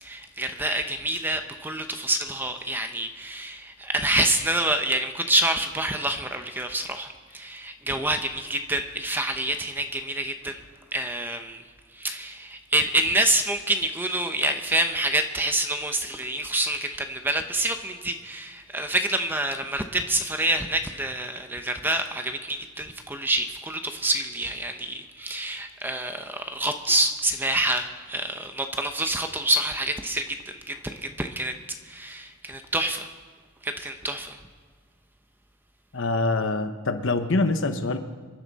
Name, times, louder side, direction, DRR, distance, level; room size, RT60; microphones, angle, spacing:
voice 1, 0.0-10.6 10.9-11.6 11.9-31.5 31.8-33.1 33.6-34.4, right 1 dB, 10° right, 6 dB, 0.8 m, -27 dB
voice 2, 35.9-38.0, left 2 dB, 60° left, 8 dB, 1.0 m, -25 dB
25.5 x 11.0 x 4.1 m, 1.5 s
head